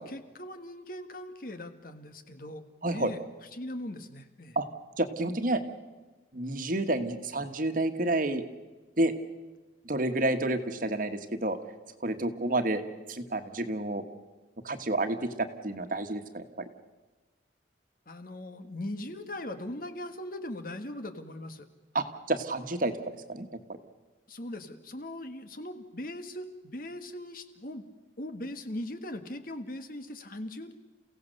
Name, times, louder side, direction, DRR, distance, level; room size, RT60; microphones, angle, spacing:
voice 1, 0.0-3.2 3.5-4.6 18.1-21.7 24.3-27.9 28.2-30.7, left 1 dB, 55° left, 8 dB, 1.6 m, -40 dB
voice 2, 5.0-5.6 6.3-8.4 9.0-9.1 9.8-11.6 12.0-12.8 13.1-14.0 14.6-16.4 21.9-23.5, right 2 dB, 50° right, 8 dB, 1.5 m, -29 dB
29.5 x 16.5 x 6.7 m, 1.2 s
head